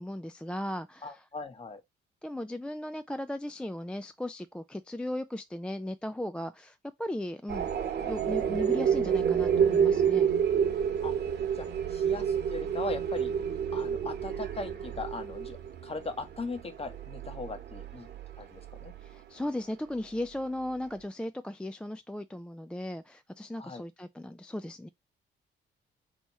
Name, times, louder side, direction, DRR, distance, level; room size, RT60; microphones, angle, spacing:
voice 1, 0.0-1.2 2.2-7.7 8.0-10.3 19.0-24.9, left 1 dB, 5° left, 0.3 m, -37 dB
voice 2, 1.0-1.8 11.0-11.1 11.5-13.3 13.7-15.6 15.8-18.1 18.4-18.9 23.6-23.8, left 3 dB, 30° left, 1.1 m, -39 dB
sound 1, 7.5-19.1, right 8 dB, 55° right, 1.1 m, -29 dB
3.5 x 2.9 x 4.1 m
cardioid pair, 90°, 20 cm